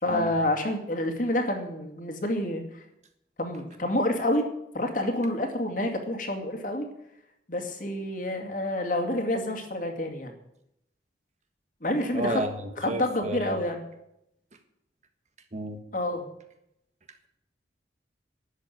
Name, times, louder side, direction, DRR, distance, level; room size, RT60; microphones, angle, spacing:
voice 1, 0.0-2.8 3.4-4.5 4.7-6.9 7.5-10.3 11.8-12.4 12.8-13.8 15.9-16.3, left 1 dB, 45° left, 4 dB, 2.3 m, -28 dB
voice 2, 12.1-13.6 15.5-15.8, right 1 dB, 40° right, 7 dB, 1.5 m, -32 dB
12.0 x 8.2 x 9.2 m, 0.81 s
head